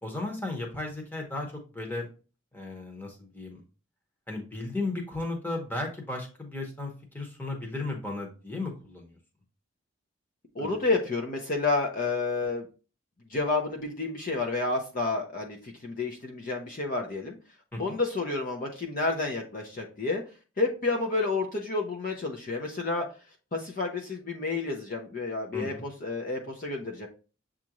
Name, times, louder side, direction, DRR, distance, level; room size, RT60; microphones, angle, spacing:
voice 1, 0.0-2.1 2.5-3.6 4.3-9.2 10.6-10.8 17.7-17.8 25.5-25.9, left 2 dB, 10° left, 1 dB, 0.9 m, -35 dB
voice 2, 10.5-12.7 13.3-17.4 17.8-20.2 20.6-23.1 23.5-27.1, left 3 dB, 40° left, 2 dB, 0.6 m, -30 dB
7.2 x 2.5 x 2.9 m, 0.34 s
head